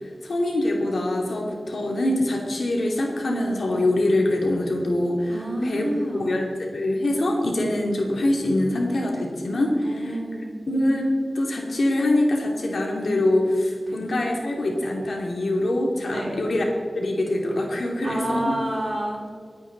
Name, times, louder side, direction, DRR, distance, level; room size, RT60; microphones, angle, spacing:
voice 1, 0.2-5.4 5.6-5.8 6.1-6.5 6.7-10.1 10.7-11.1 11.3-16.6 16.9-18.5, left 1 dB, 90° left, 0 dB, 2.6 m, -24 dB
voice 2, 5.3-6.3 9.8-10.5 13.9-14.0 16.1-16.4 18.0-19.2, right 1 dB, 40° right, -1 dB, 3.0 m, -29 dB
22.5 x 9.0 x 4.1 m, 2.2 s
wide cardioid pair, 80°, 0 cm